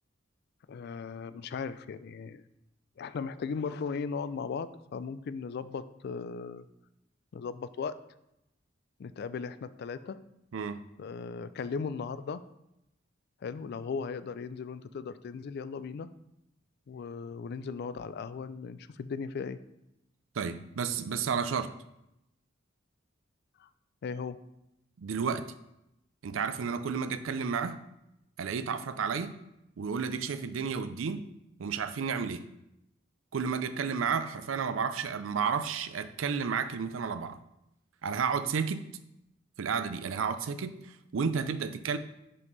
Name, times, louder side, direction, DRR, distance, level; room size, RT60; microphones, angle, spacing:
voice 1, 0.7-2.4 3.0-6.6 7.3-8.0 9.0-10.2 11.0-12.4 13.4-16.1 16.9-19.6 23.6-23.7 24.0-24.4, left 5 dB, 55° left, 14 dB, 0.3 m, -37 dB
voice 2, 20.4-21.7 25.0-25.4 26.2-27.8 28.4-29.3 29.8-31.2 31.6-32.4 33.3-37.4 38.0-38.8 39.6-42.0, right 6 dB, 80° right, 12 dB, 0.4 m, -32 dB
5.4 x 5.4 x 3.9 m, 0.84 s
head